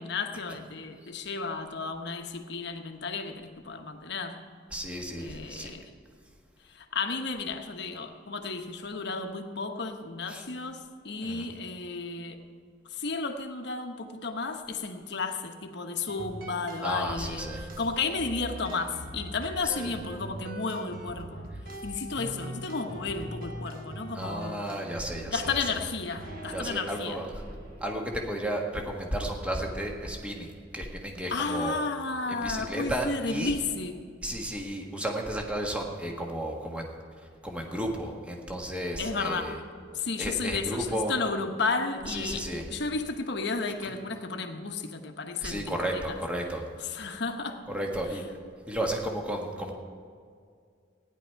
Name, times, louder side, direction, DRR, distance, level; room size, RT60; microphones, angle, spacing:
voice 1, 0.0-4.4 5.2-5.9 6.6-12.4 12.9-21.5 21.8-24.7 25.3-27.2 31.3-34.0 39.0-39.6 39.9-46.2 46.8-47.6, left 4 dB, 65° left, 5 dB, 1.1 m, -33 dB
voice 2, 4.7-5.7 10.3-10.4 11.2-11.5 16.8-17.6 19.6-19.9 24.1-25.6 26.5-27.3 27.8-31.8 32.3-33.5 34.2-36.9 37.4-39.6 40.2-41.1 42.1-42.7 45.4-46.7 47.7-48.2 48.7-49.7, right 1 dB, 5° right, 0 dB, 1.4 m, -33 dB
sound 1, 16.1-29.5, right 1 dB, 50° right, 1.3 m, -42 dB
15.5 x 10.5 x 4.6 m, 2.2 s
head